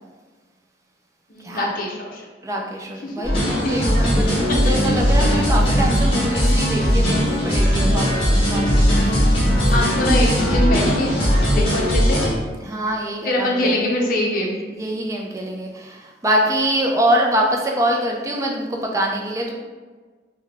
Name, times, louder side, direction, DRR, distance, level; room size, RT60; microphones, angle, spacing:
voice 1, 1.3-2.2 3.0-3.2 3.6-3.8 4.5-4.7 9.7-12.2 13.2-14.6, left 1 dB, 50° left, -1 dB, 0.6 m, -23 dB
voice 2, 2.4-9.0 9.6-9.7 12.6-13.7 14.7-19.5, right 1 dB, 20° right, 0 dB, 0.4 m, -24 dB
sound 1, 3.2-12.3, equal, 30° left, 1.2 m, -18 dB
3.8 x 2.1 x 3.4 m, 1.4 s
head